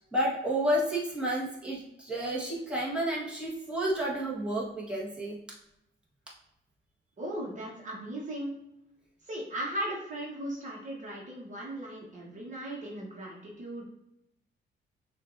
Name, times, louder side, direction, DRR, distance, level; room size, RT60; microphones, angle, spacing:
voice 1, 0.1-5.4, right 1 dB, 5° right, -6 dB, 1.5 m, -30 dB
voice 2, 7.2-8.6 9.2-13.9, right 1 dB, 40° right, -3 dB, 1.2 m, -37 dB
6.2 x 2.6 x 2.6 m, 0.82 s
cardioid pair, 90°, 20 cm